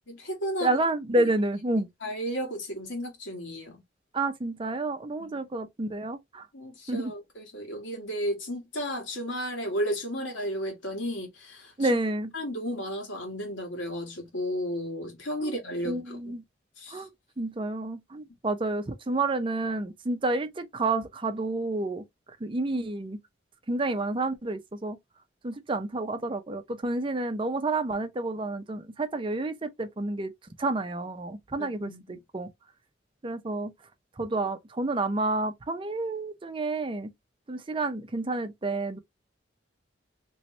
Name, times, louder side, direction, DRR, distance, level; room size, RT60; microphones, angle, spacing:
voice 1, 0.1-0.8 1.2-1.3 2.0-3.8 5.2-5.4 6.5-11.9 12.3-16.3 16.8-17.1 31.6-32.2, equal, 85° left, 1.7 m, -33 dB
voice 2, 0.6-1.9 4.1-6.5 6.9-7.1 11.8-12.3 15.4-15.5 15.8-16.4 16.9-17.1 17.4-22.0 22.4-23.2 23.7-25.0 25.4-30.3 30.6-32.5 33.2-33.7 34.2-37.1 37.5-39.0, right 2 dB, 25° right, 0.5 m, -29 dB
3.0 x 3.0 x 3.1 m
head